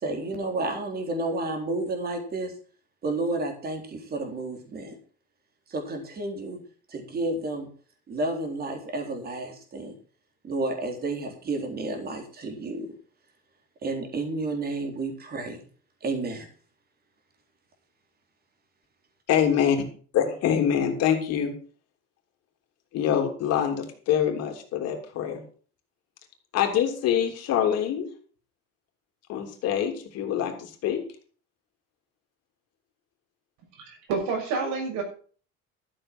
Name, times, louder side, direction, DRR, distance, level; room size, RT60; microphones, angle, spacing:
voice 1, 0.0-2.5 3.0-5.0 5.7-6.6 6.9-7.7 8.1-10.0 10.4-12.9 13.8-15.6 16.0-16.5, right 2 dB, 30° right, 4 dB, 3.7 m, -31 dB
voice 2, 19.3-19.8 20.1-21.5 22.9-25.4 26.5-28.1 29.3-31.0, left 9 dB, 60° left, 4 dB, 3.1 m, -25 dB
voice 3, 33.8-35.0, right 4 dB, 75° right, 2 dB, 6.6 m, -29 dB
13.0 x 7.9 x 6.1 m, 0.42 s
cardioid pair, 135°, 29 cm